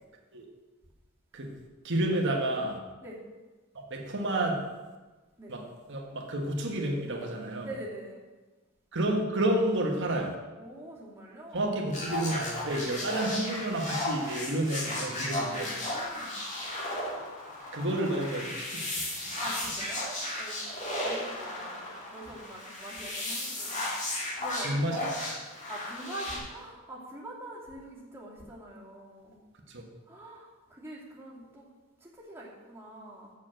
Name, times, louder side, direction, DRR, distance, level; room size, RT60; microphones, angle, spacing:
voice 1, 1.8-2.8 3.7-4.6 5.5-5.6 5.9-7.7 8.9-10.3 11.5-15.7 17.7-19.0 24.6-25.0 29.7-29.8, right 1 dB, 55° right, 0 dB, 1.5 m, -30 dB
voice 2, 7.6-8.2 10.5-12.1 15.8-16.4 17.1-17.2 19.4-20.0 20.3-20.6 21.0-25.2 25.7-29.4 30.0-31.7 32.0-33.3, right 1 dB, 10° right, -6 dB, 2.4 m, -44 dB
sound 1, 11.9-26.4, left 1 dB, 35° left, 2.6 m, -35 dB
7.1 x 6.9 x 7.7 m, 1.2 s
head